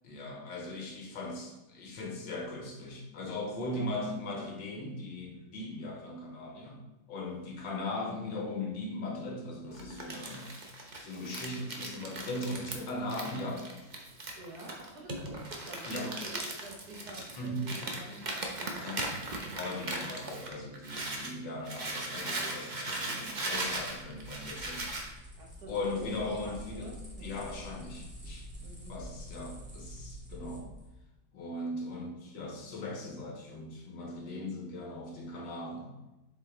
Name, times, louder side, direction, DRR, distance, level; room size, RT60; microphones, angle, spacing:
voice 1, 0.0-10.5 11.0-13.7 15.8-16.2 17.4-17.7 18.8-19.0 19.5-24.9 25.7-26.9 27.2-28.5 28.9-30.7 31.3-36.0, left 2 dB, 75° left, 0 dB, 1.9 m, -39 dB
voice 2, 3.6-4.0 8.0-8.1 12.2-12.4 14.3-15.9 16.2-19.6 22.6-23.5 25.4-26.1 26.4-27.3 28.6-28.9, right 1 dB, 55° right, -1 dB, 1.6 m, -49 dB
Crumpling crinkling, 9.7-21.3 21.6-25.1, right 2 dB, 40° right, 0.6 m, -38 dB
sound 1, 23.4-30.9, equal, 5° right, 1.8 m, -47 dB
7.1 x 5.1 x 3.7 m, 1.0 s
omnidirectional pair, 2.1 m